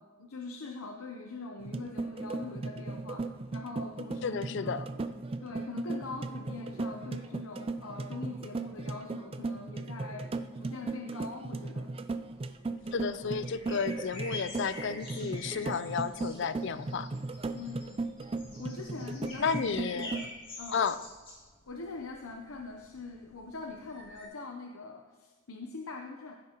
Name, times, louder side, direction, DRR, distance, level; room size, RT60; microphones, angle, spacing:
voice 1, 0.0-4.9 5.4-11.9 17.5-18.1 18.6-20.3 20.6-20.8 21.7-26.4, left 3 dB, 90° left, 3 dB, 0.8 m, -43 dB
sound 1, 1.6-20.3, right 3 dB, 25° right, 0.4 m, -37 dB
voice 2, 4.2-4.9 12.9-17.1 19.4-20.1 20.7-21.0, left 5 dB, 55° left, 14 dB, 0.4 m, -32 dB
sound 2, 12.3-24.3, left 2 dB, 25° left, 2.4 m, -47 dB
15.5 x 9.4 x 3.0 m, 1.4 s
head